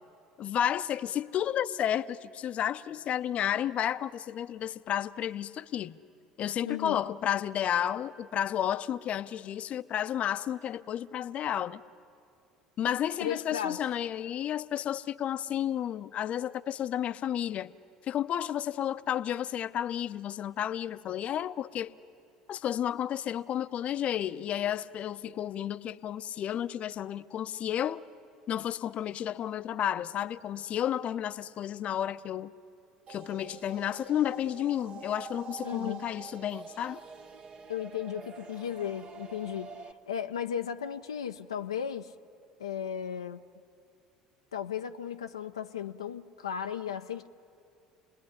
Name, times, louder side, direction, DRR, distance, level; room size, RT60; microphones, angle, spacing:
voice 1, 0.4-6.0 6.4-11.8 12.8-17.7 18.1-21.9 22.5-28.0 28.5-32.5 33.1-37.0, left 10 dB, 50° left, 0.7 m, -32 dB
voice 2, 6.6-7.0 13.2-13.8 35.6-36.1 37.7-42.1 42.6-43.4 44.5-47.3, left 9 dB, 90° left, 0.6 m, -35 dB
sound 1, 33.1-39.9, right 6 dB, 45° right, 1.4 m, -46 dB
28.5 x 20.5 x 9.9 m
hypercardioid pair, 70°, 3 cm